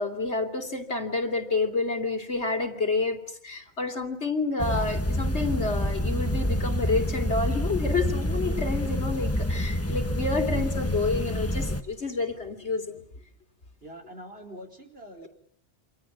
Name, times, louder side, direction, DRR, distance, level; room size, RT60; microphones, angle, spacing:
voice 1, 0.0-3.2 3.4-13.0, left 3 dB, 90° left, 5 dB, 3.5 m, -29 dB
sound 1, 4.6-11.8, equal, 15° left, 1.4 m, -28 dB
voice 2, 13.8-15.3, equal, 65° right, 3 dB, 5.1 m, -44 dB
29.0 x 26.0 x 7.4 m, 0.63 s
omnidirectional pair, 1.1 m